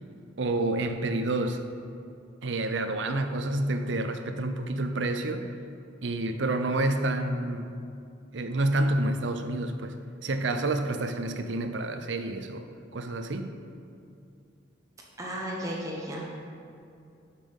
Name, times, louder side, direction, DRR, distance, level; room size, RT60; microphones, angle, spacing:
voice 1, 0.4-1.7 2.4-5.5 6.0-7.8 8.3-9.9 10.2-12.7 12.9-13.5, right 2 dB, 70° right, 8 dB, 0.6 m, -29 dB
voice 2, 15.2-16.3, equal, 15° right, -3 dB, 1.0 m, -34 dB
12.0 x 5.7 x 3.5 m, 2.5 s
head